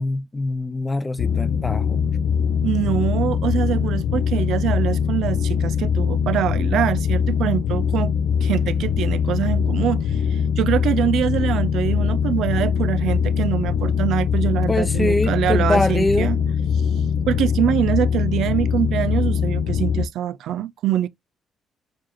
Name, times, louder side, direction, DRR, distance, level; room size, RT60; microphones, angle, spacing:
voice 1, 0.0-2.0 14.7-16.3, left 2 dB, 20° left, 0.4 m, -23 dB
sound 1, 1.2-20.1, left 7 dB, 80° left, 0.4 m, -22 dB
voice 2, 2.6-8.1 8.4-16.4 17.3-21.1, right 11 dB, 80° right, 0.3 m, -24 dB
4.7 x 2.4 x 2.9 m
cardioid pair, 90°, 0 cm